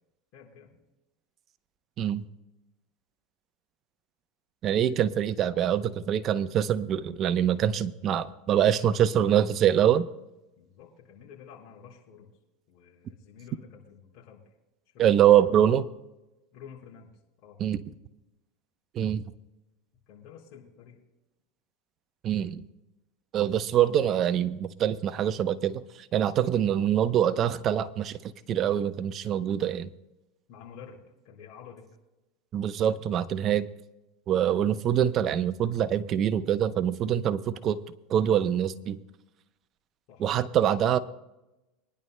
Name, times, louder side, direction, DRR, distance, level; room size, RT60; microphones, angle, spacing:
voice 1, 0.3-0.8 10.6-12.3 12.7-14.5 14.9-15.4 16.5-17.1 17.4-17.6 20.1-21.0 30.5-31.9 32.9-33.0 40.1-40.2, left 7 dB, 60° left, 4.3 m, -50 dB
voice 2, 4.6-10.1 15.0-15.9 17.6-17.8 18.9-19.2 22.2-22.6 23.3-29.9 32.5-33.7 34.3-37.8 38.1-39.0 40.2-41.0, right 10 dB, 40° right, 0.7 m, -24 dB
24.5 x 10.5 x 2.2 m
supercardioid pair, 115°, 0 cm